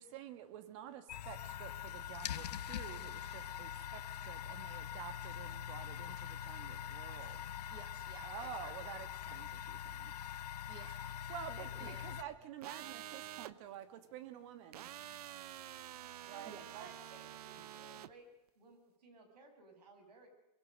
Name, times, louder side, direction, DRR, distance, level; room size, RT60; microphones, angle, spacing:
voice 1, 0.0-7.7 8.2-10.7 11.3-16.9, right 10 dB, 50° right, 11 dB, 1.6 m, -50 dB
sound 1, 1.1-12.2, left 10 dB, 80° left, 1.2 m, -44 dB
voice 2, 7.7-8.7 10.7-11.4 11.7-12.2 16.4-16.6 17.6-17.7, right 6 dB, 25° right, 9 dB, 2.2 m, -56 dB
sound 2, 12.6-13.5 14.7-18.1, right 12 dB, 75° right, 0.9 m, -48 dB
voice 3, 16.3-18.3 18.6-20.3, right 3 dB, 90° right, 5 dB, 7.2 m, -58 dB
23.5 x 22.5 x 6.5 m, 0.90 s
hypercardioid pair, 140°, 20 cm